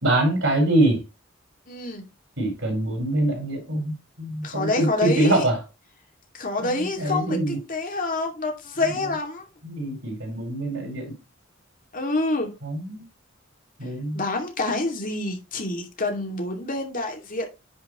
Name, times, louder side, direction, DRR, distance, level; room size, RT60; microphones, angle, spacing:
voice 1, 0.0-1.0 2.4-5.6 6.6-7.6 9.6-11.1 12.6-13.0 13.8-14.2, right 1 dB, 70° right, 4.7 m, -24 dB
voice 2, 1.7-2.0 4.4-5.5 6.3-9.4 11.9-12.5 14.1-17.4, left 2 dB, 45° left, 2.5 m, -27 dB
10.0 x 6.2 x 3.1 m
head